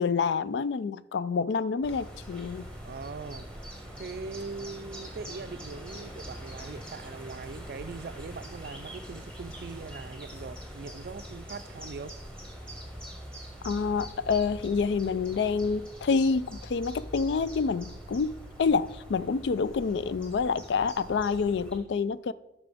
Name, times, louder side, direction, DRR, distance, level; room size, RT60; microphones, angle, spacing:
voice 1, 0.0-2.7 13.6-22.3, left 5 dB, 80° left, 0.4 m, -28 dB
sound 1, 1.8-21.8, equal, 5° left, 1.4 m, -43 dB
voice 2, 2.8-3.5 4.0-12.2, right 4 dB, 55° right, 0.4 m, -41 dB
13.0 x 5.8 x 3.5 m
head